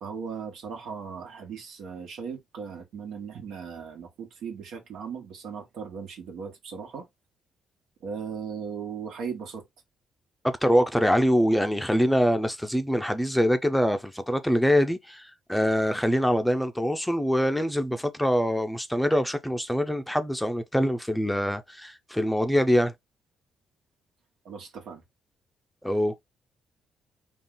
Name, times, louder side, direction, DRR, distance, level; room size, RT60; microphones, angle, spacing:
voice 1, 0.0-7.1 8.0-9.6 24.4-25.0, right 6 dB, 80° right, 1.4 m, -37 dB
voice 2, 10.4-22.9 25.8-26.2, equal, 5° left, 0.5 m, -24 dB
3.7 x 2.4 x 3.8 m
cardioid pair, 90°, 0 cm